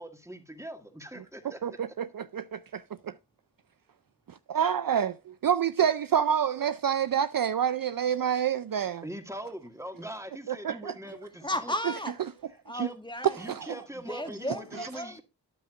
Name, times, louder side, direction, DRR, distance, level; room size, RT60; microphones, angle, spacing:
voice 1, 0.0-1.6 9.0-11.7 12.7-12.9 13.4-15.2, right 1 dB, 5° right, 2.1 m, -42 dB
voice 2, 1.6-3.1 4.5-9.0 10.5-11.0 13.3-13.8, right 8 dB, 55° right, 0.5 m, -28 dB
voice 3, 11.0-12.2 12.7-13.4 13.9-15.2, left 1 dB, 10° left, 1.7 m, -35 dB
13.0 x 9.2 x 2.5 m
cardioid pair, 45°, 43 cm